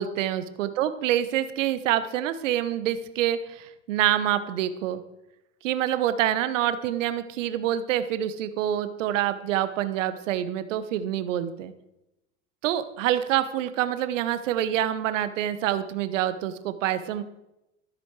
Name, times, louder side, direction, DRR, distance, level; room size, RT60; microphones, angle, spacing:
voice 1, 0.0-5.0 5.6-11.7 12.6-17.2, right 11 dB, 85° right, 12 dB, 1.0 m, -26 dB
13.5 x 7.9 x 4.7 m, 0.89 s
hypercardioid pair, 95°, 37 cm